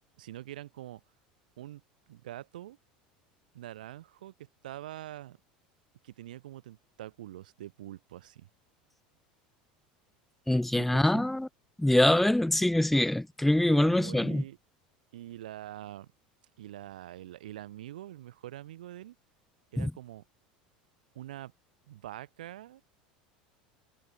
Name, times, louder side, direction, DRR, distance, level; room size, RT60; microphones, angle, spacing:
voice 1, 0.2-1.0 1.6-1.8 2.1-2.8 3.5-5.4 6.0-8.5 10.7-11.3 13.7-14.6 15.1-16.1 16.6-19.1 19.7-20.2 21.1-21.5 21.9-22.8, right 13 dB, 80° right, 1.2 m, -44 dB
voice 2, 10.5-11.5 11.8-14.4 19.8-19.9, left 1 dB, 5° left, 0.3 m, -24 dB
hypercardioid pair, 85°, 5 cm